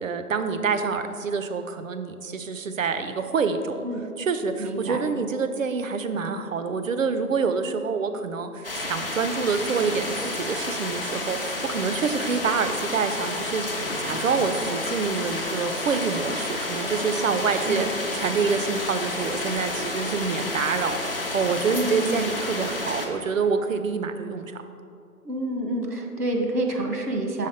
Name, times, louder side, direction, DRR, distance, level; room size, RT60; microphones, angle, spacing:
voice 1, 0.0-3.8 4.2-13.7 14.0-24.6, right 5 dB, 60° right, 9 dB, 0.5 m, -27 dB
voice 2, 4.6-5.0 17.4-17.9 21.7-22.3 25.2-27.5, right 1 dB, 85° right, 2 dB, 1.2 m, -28 dB
sound 1, 8.6-23.1, left 2 dB, 40° left, 0.5 m, -30 dB
sound 2, 9.5-22.2, left 4 dB, 55° left, 0.8 m, -44 dB
5.7 x 3.5 x 5.0 m, 2.4 s
figure-of-eight pair, 160°, 46 cm